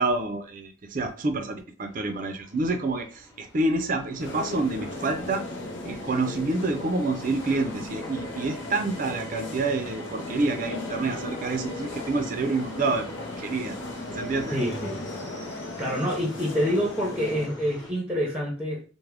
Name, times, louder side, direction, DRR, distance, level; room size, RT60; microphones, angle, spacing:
voice 1, 0.0-5.4 5.8-13.1 13.4-13.8 14.1-14.6, right 3 dB, 45° right, 0.4 m, -28 dB
sound 1, 1.8-17.9, left 1 dB, 20° left, 1.0 m, -45 dB
sound 2, 4.2-17.5, left 2 dB, 70° left, 0.7 m, -37 dB
voice 2, 14.5-15.1 15.5-18.8, equal, 5° right, 0.7 m, -27 dB
3.4 x 2.1 x 3.5 m
head